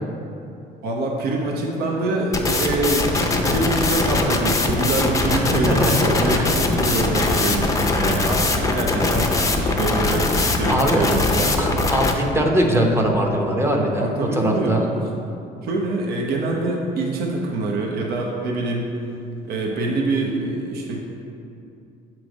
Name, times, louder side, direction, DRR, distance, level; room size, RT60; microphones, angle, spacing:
voice 1, 0.8-11.7 14.0-14.9 15.6-18.9 19.4-21.0, right 2 dB, 70° right, -1 dB, 0.8 m, -25 dB
sound 1, 2.3-12.1, left 2 dB, 20° left, 0.5 m, -21 dB
voice 2, 5.3-6.3 10.7-11.0 11.6-14.9, right 1 dB, 15° right, 1 dB, 0.7 m, -21 dB
7.3 x 3.1 x 5.1 m, 2.7 s
cardioid pair, 110°, 17 cm